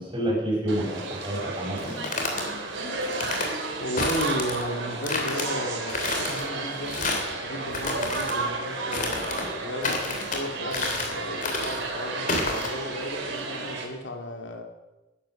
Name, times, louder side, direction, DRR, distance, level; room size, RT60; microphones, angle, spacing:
voice 1, 0.0-2.2 9.4-9.5, right 1 dB, 25° right, -3 dB, 6.3 m, -29 dB
sound 1, 0.7-13.9, right 3 dB, 85° right, 3.2 m, -32 dB
sound 2, 1.8-2.4 3.0-3.5 4.0-4.6 5.0-5.5 5.9-6.4 6.9-7.3 7.7-8.4 8.9-9.5 9.8-10.4 10.7-11.1 11.4-11.8 12.3-12.7, left 3 dB, 45° left, 3.0 m, -30 dB
voice 2, 3.8-7.1 7.4-14.6, equal, 80° left, 3 dB, 2.4 m, -34 dB
15.0 x 11.5 x 6.5 m, 1.0 s
head